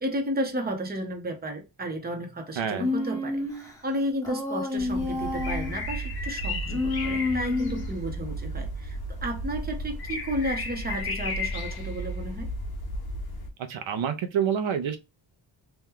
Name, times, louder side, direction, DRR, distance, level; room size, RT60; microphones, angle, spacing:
voice 1, 0.0-12.5, right 1 dB, 20° right, 0.7 m, -33 dB
voice 2, 2.6-2.9 13.7-15.0, right 8 dB, 80° right, 0.6 m, -27 dB
Human voice, 2.8-3.7 4.2-5.8 6.7-7.9, left 3 dB, 5° left, 1.2 m, -29 dB
sound 1, 4.8-13.5, equal, 55° left, 0.8 m, -33 dB
2.9 x 2.2 x 3.6 m
wide cardioid pair, 135°, 46 cm